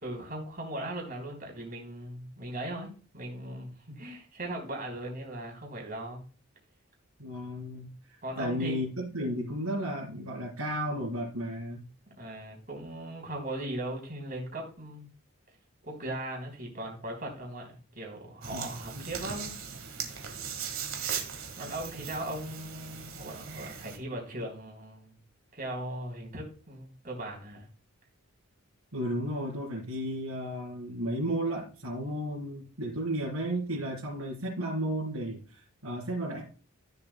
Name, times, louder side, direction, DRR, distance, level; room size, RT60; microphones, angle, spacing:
voice 1, 0.0-6.2 8.2-8.8 12.1-15.1 15.9-19.6 21.6-25.2 25.5-27.7, right 1 dB, 40° right, 0 dB, 3.4 m, -38 dB
voice 2, 7.2-7.9 8.3-11.8 18.5-18.6 18.9-19.1 28.9-36.4, equal, 80° right, -6 dB, 3.9 m, -33 dB
sound 1, 18.4-24.0, right 7 dB, 65° right, 1.7 m, -39 dB
14.0 x 7.1 x 2.2 m, 0.38 s
head